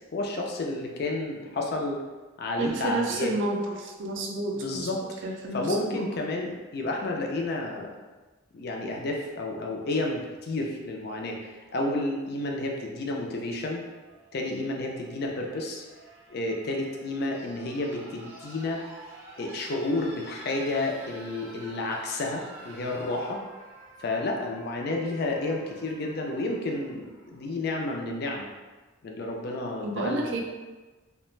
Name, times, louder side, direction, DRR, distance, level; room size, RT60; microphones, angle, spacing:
voice 1, 0.1-2.0 2.4-3.3 4.5-5.0 5.5-8.0 8.5-13.8 14.3-15.8 16.3-18.8 19.4-23.4 24.0-28.5 29.0-30.4, left 2 dB, 50° left, 0 dB, 0.4 m, -31 dB
voice 2, 2.6-4.9 5.2-6.1 29.8-30.4, right 1 dB, 65° right, 0 dB, 0.4 m, -30 dB
sound 1, 13.5-27.5 28.7-28.8, right 1 dB, 10° right, 0.5 m, -49 dB
2.4 x 2.1 x 3.1 m, 1.2 s
head